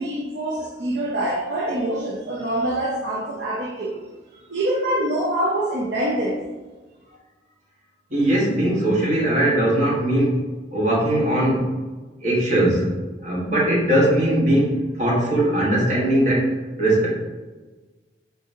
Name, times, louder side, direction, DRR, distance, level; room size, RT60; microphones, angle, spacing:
voice 1, 0.0-4.0 4.5-6.4, right 1 dB, 75° right, -3 dB, 0.6 m, -25 dB
voice 2, 8.1-10.4 10.7-11.7 12.2-12.9 13.2-17.1, right 1 dB, 45° right, -5 dB, 1.3 m, -20 dB
3.9 x 3.8 x 2.6 m, 1.3 s
head